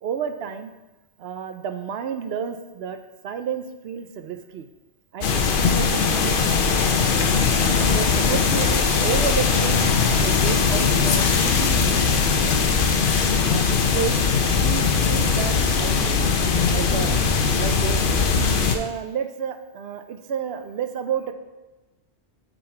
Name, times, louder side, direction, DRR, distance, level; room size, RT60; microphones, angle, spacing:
voice 1, 0.0-0.7 1.2-3.0 3.2-4.7 5.1-7.0 7.9-12.6 13.5-14.2 14.6-16.3 16.7-17.2 17.5-18.3 18.6-21.3, right 7 dB, 70° right, 8 dB, 0.8 m, -31 dB
sound 1, 5.2-18.8, left 5 dB, 55° left, 0.7 m, -20 dB
9.0 x 3.9 x 4.3 m, 1.1 s
omnidirectional pair, 1.1 m